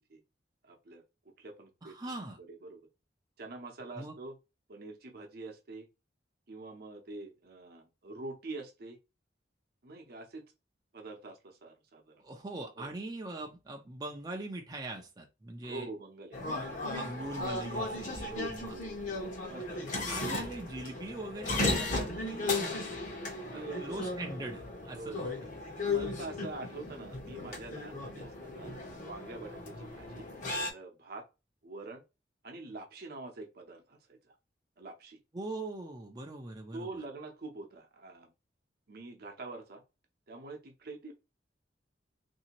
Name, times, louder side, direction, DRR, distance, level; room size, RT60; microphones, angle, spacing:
voice 1, 0.6-2.9 3.4-4.4 4.7-5.9 6.5-9.0 9.8-10.5 10.9-12.2 12.8-12.9 15.6-16.8 18.2-19.0 19.5-19.9 23.5-24.1 24.8-25.3 25.8-28.7 29.0-30.3 30.7-31.3 31.6-32.0 32.4-34.3 34.8-35.2 36.7-38.3 38.9-39.8 40.3-41.1, right 3 dB, 60° right, 0.8 m, -45 dB
voice 2, 1.8-2.4 4.0-4.1 12.2-15.9 16.9-18.7 20.1-23.0 23.5-25.3 26.0-26.1 35.3-37.0, right 2 dB, 20° right, 0.5 m, -42 dB
sound 1, 16.3-30.7, left 2 dB, 45° left, 0.9 m, -36 dB
3.3 x 2.7 x 2.9 m
head